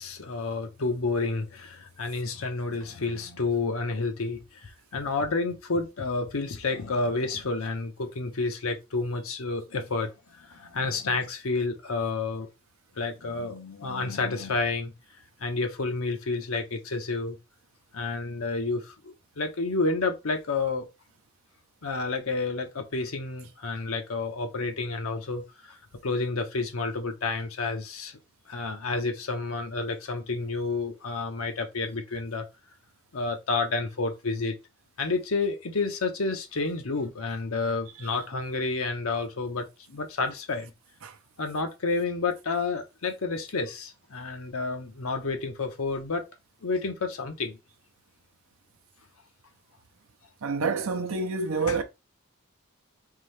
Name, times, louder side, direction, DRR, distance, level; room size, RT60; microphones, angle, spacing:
voice 1, 0.0-12.5 13.0-14.9 15.4-17.4 17.9-20.9 21.8-28.2 28.5-32.5 33.1-34.5 35.0-40.7 41.4-46.3 46.6-47.6 51.7-51.8, left 3 dB, 75° left, 0.8 m, -30 dB
voice 2, 50.4-51.8, right 4 dB, 75° right, 0.6 m, -28 dB
3.7 x 2.7 x 3.1 m
head